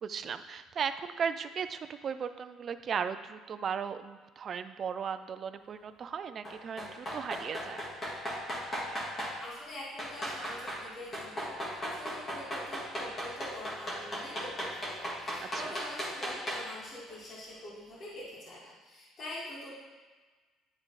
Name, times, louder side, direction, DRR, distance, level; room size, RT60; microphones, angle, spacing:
voice 1, 0.0-7.8 15.4-15.7, right 7 dB, 40° right, 11 dB, 0.3 m, -36 dB
sound 1, 6.4-9.3 10.0-10.9 11.1-16.8 17.1-17.2, equal, 25° left, 1.7 m, -36 dB
voice 2, 9.1-19.7, left 1 dB, 40° left, -8 dB, 2.0 m, -45 dB
10.0 x 3.7 x 3.2 m, 1.4 s
cardioid pair, 135°, 0 cm